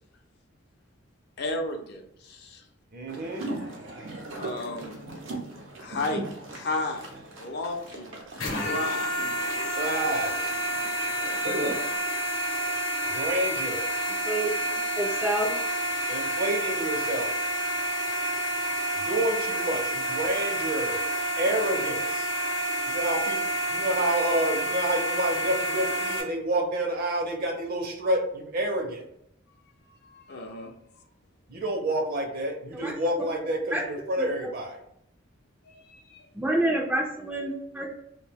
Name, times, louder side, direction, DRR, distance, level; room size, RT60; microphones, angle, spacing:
voice 1, 1.4-2.6 4.4-5.0 5.8-6.2 6.5-7.1 7.4-8.2 8.7-9.6 30.0-30.7 35.7-36.3, left 2 dB, 55° left, 3 dB, 0.5 m, -34 dB
voice 2, 2.9-3.5 9.8-10.3 13.1-13.9 16.1-17.3 19.0-21.0 21.4-22.3 22.9-23.4 23.7-29.0 31.5-34.8, right 1 dB, 50° right, 3 dB, 0.6 m, -29 dB
sound 1, 3.1-12.0, right 1 dB, 90° right, 0.6 m, -38 dB
sound 2, 8.4-26.2, right 1 dB, 85° left, 0.8 m, -29 dB
voice 3, 15.0-15.5 32.7-32.9 33.7-33.8 34.2-34.3 36.3-37.9, right 1 dB, 10° right, -2 dB, 0.3 m, -27 dB
2.6 x 2.2 x 3.3 m, 0.74 s
head